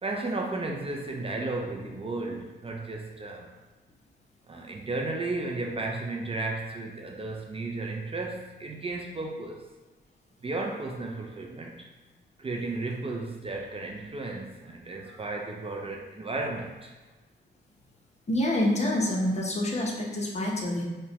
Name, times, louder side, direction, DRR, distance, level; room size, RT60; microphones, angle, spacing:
voice 1, 0.0-3.5 4.5-9.7 10.4-11.9 12.4-16.9, right 2 dB, 30° right, 0 dB, 0.4 m, -34 dB
voice 2, 18.3-20.8, left 1 dB, 35° left, -1 dB, 0.7 m, -27 dB
4.5 x 2.1 x 2.9 m, 1.2 s
cardioid pair, 90°, 19 cm